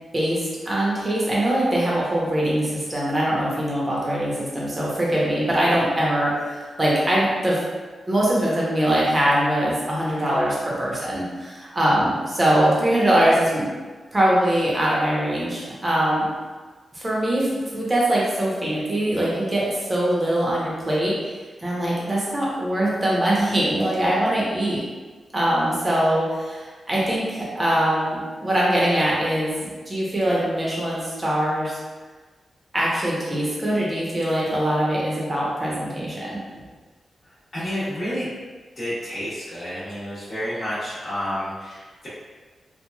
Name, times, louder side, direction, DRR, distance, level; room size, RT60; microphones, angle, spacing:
voice 1, 0.1-7.6 8.1-13.7 14.1-16.3 16.9-17.5 17.7-21.1 21.6-24.8 25.3-29.5 29.9-31.8 32.7-36.4, right 1 dB, 25° right, -6 dB, 0.8 m, -22 dB
voice 2, 37.5-38.3 38.8-42.1, equal, 40° left, -14 dB, 1.0 m, -30 dB
3.0 x 2.2 x 2.3 m, 1.4 s
wide cardioid pair, 100°, 0 cm